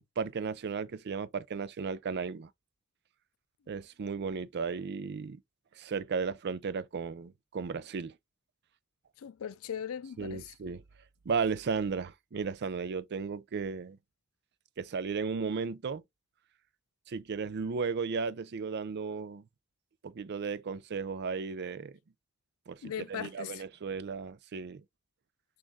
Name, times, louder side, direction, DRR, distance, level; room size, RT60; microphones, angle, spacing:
voice 1, 0.0-2.5 3.7-5.4 5.8-8.1 10.2-10.8 11.3-14.0 14.8-16.0 17.1-19.4 20.0-22.0 22.7-24.8, right 5 dB, 55° right, 0.4 m, -35 dB
voice 2, 9.2-10.5 22.8-23.6, left 8 dB, 85° left, 0.4 m, -39 dB
6.2 x 2.5 x 3.5 m
head